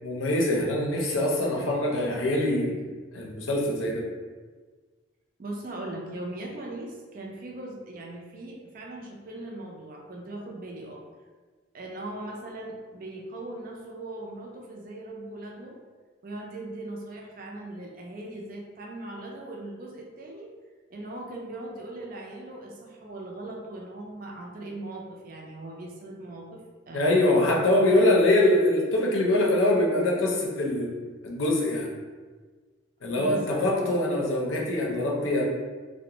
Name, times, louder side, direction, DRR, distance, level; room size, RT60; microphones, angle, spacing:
voice 1, 0.0-2.8 3.1-4.1 26.9-30.9 31.2-31.9 33.0-35.4, left 1 dB, 90° left, -1 dB, 0.5 m, -23 dB
voice 2, 5.4-11.0 11.7-15.8 16.2-20.5 20.9-26.6 26.9-27.3 33.2-33.7, right 2 dB, 45° right, -1 dB, 0.4 m, -39 dB
2.4 x 2.1 x 2.8 m, 1.4 s
head